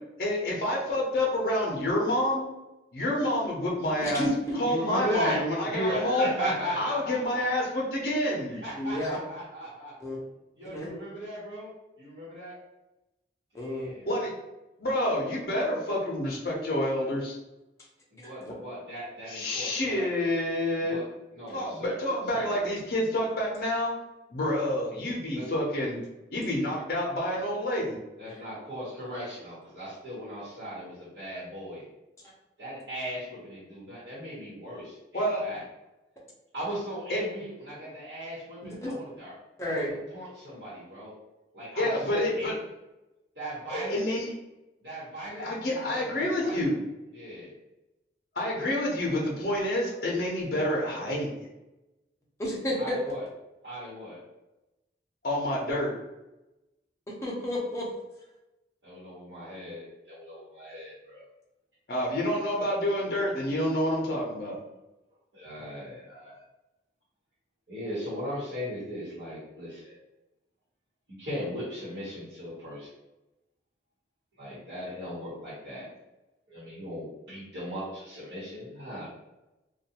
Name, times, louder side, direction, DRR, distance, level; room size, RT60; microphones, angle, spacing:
voice 1, 0.2-2.5 2.9-4.2 4.5-6.3 6.8-8.6 14.1-14.3 14.8-17.4 19.3-21.0 21.5-23.9 24.3-26.0 26.3-28.0 35.1-35.4 37.1-37.2 41.8-42.6 43.7-44.3 45.4-46.8 48.4-51.5 55.2-55.9 61.9-64.6, left 1 dB, 55° left, -3 dB, 0.6 m, -28 dB
voice 2, 4.0-4.5 8.8-9.2 10.0-10.2 10.6-10.9 13.5-13.9 18.2-18.3 28.3-28.4 38.6-38.9 39.6-39.9 52.4-53.0 57.2-57.9, left 1 dB, 15° left, -5 dB, 0.6 m, -31 dB
voice 3, 4.6-7.6 8.5-9.9 10.6-11.7 12.0-12.5 13.5-14.1 18.1-20.1 20.8-21.0 21.3-22.0 22.3-22.7 25.3-25.5 28.2-31.8 32.6-35.6 36.5-39.3 39.6-39.9 40.1-41.2 41.5-42.5 43.3-44.0 44.8-46.7 47.1-47.5 52.8-53.2 53.6-54.2 58.8-61.2 65.3-66.4 67.7-70.0 71.1-72.9 74.4-75.9 76.5-79.1, equal, 85° right, -10 dB, 1.2 m, -37 dB
2.4 x 2.3 x 2.8 m, 0.98 s
head